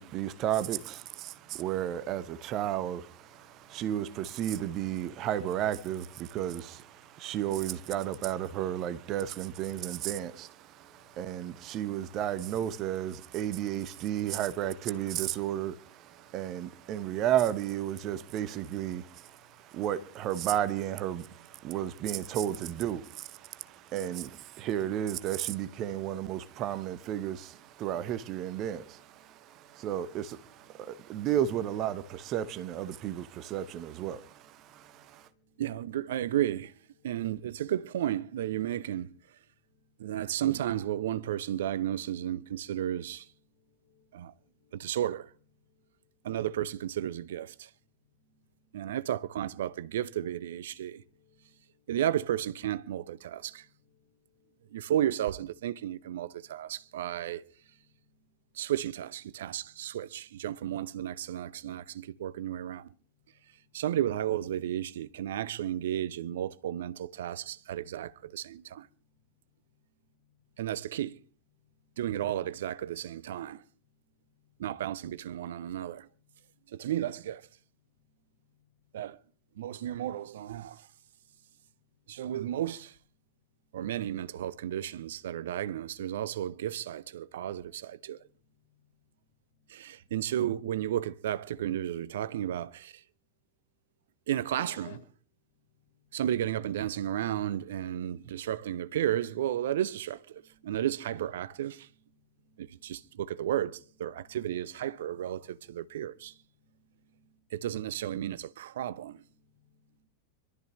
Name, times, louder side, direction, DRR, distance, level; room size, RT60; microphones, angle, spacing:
voice 1, 0.0-35.3, right 11 dB, 35° right, 1.1 m, -33 dB
voice 2, 1.2-2.5 3.2-4.6 7.1-7.3 9.7-12.2 15.4-17.1 19.1-19.2 19.4-19.8 23.4-24.1 24.6-24.7 26.3-31.3 32.2-36.2 37.0-37.6 38.6-39.3 39.5-40.4 41.8-45.0 45.6-46.5 47.8-49.8 50.7-52.0 52.9-54.9 55.7-57.0 57.2-58.7 59.3-60.0 62.7-63.9 67.4-68.3 68.6-70.7 71.6-72.0 73.6-74.7 75.4-76.8 77.8-79.0 79.5-80.0 80.6-82.4 83.3-83.9 84.6-84.8 87.2-87.3 87.6-90.1 94.5-95.0 95.4-96.3 100.3-100.9 101.8-103.5 103.9-108.1 108.5-110.1, left 5 dB, 65° left, 5.6 m, -65 dB
voice 3, 35.6-36.7 37.0-39.4 40.0-43.3 44.1-44.3 44.7-45.3 46.2-47.7 48.7-51.0 51.9-53.7 54.7-57.4 58.5-62.9 63.7-68.9 70.6-71.2 72.0-73.6 74.6-76.1 76.7-77.5 78.9-79.2 79.6-80.9 82.1-83.0 83.7-88.2 89.7-93.0 94.3-94.7 96.1-101.9 102.6-106.4 107.5-109.2, right 11 dB, 60° right, 0.7 m, -33 dB
26.0 x 13.0 x 3.1 m
figure-of-eight pair, 90°, 0 cm